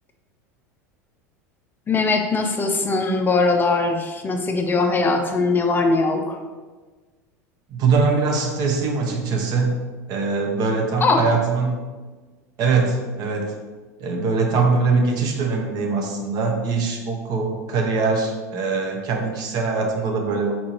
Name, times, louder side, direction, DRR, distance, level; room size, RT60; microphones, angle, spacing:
voice 1, 1.9-6.4 11.0-11.3, left 3 dB, 20° left, 4 dB, 0.5 m, -20 dB
voice 2, 7.7-9.7 10.1-11.8 12.6-13.5 14.0-20.5, right 4 dB, 45° right, 2 dB, 0.9 m, -22 dB
4.3 x 3.6 x 3.0 m, 1.3 s
hypercardioid pair, 85°, 9 cm